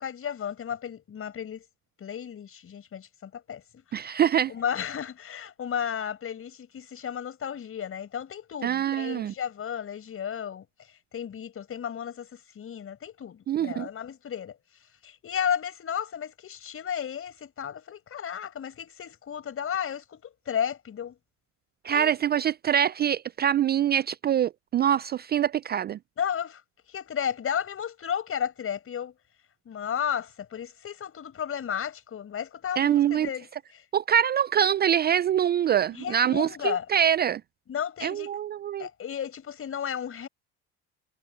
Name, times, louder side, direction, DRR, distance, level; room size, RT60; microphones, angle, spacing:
voice 1, 0.0-1.7 2.0-3.6 3.9-4.2 4.5-10.7 11.1-14.6 15.0-21.2 21.9-22.1 26.2-26.6 26.9-29.1 29.7-33.8 35.9-36.9 37.7-38.3 38.8-40.3, left 8 dB, 45° left, 5.7 m, -33 dB
voice 2, 3.9-4.5 8.6-9.3 13.5-13.9 21.8-26.0 32.8-33.3 33.9-37.4 38.0-38.9, right 9 dB, 35° right, 0.4 m, -24 dB
supercardioid pair, 80°, 31 cm